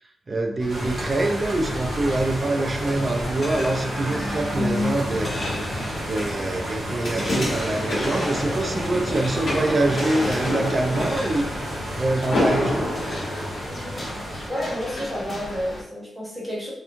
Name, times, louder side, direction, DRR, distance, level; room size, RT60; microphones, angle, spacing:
voice 1, 0.3-5.3 6.0-11.7 12.0-12.9, right 2 dB, 30° right, 3 dB, 0.4 m, -25 dB
sound 1, 0.6-15.8, left 1 dB, 30° left, 0.6 m, -34 dB
sound 2, 0.7-14.5, right 1 dB, 65° right, 0.8 m, -32 dB
sound 3, 3.1-14.4 14.9-15.0, left 1 dB, 80° left, 1.1 m, -30 dB
voice 2, 13.7-14.0 14.5-16.7, equal, 5° right, -6 dB, 0.9 m, -30 dB
2.9 x 2.2 x 2.5 m, 0.71 s
wide cardioid pair, 155°, 0 cm